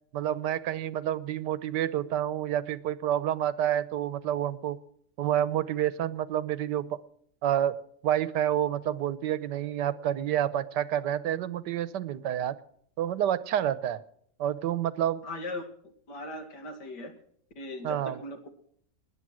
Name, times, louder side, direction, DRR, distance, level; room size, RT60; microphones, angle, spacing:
voice 1, 0.1-4.8 5.2-7.0 7.4-7.8 8.0-12.6 13.0-14.0 14.4-15.2 17.8-18.2, right 11 dB, 90° right, 16 dB, 1.4 m, -28 dB
voice 2, 15.2-15.7 16.1-17.1 17.6-18.5, left 2 dB, 80° left, 5 dB, 2.8 m, -38 dB
21.0 x 8.7 x 6.2 m, 0.64 s
omnidirectional pair, 1.8 m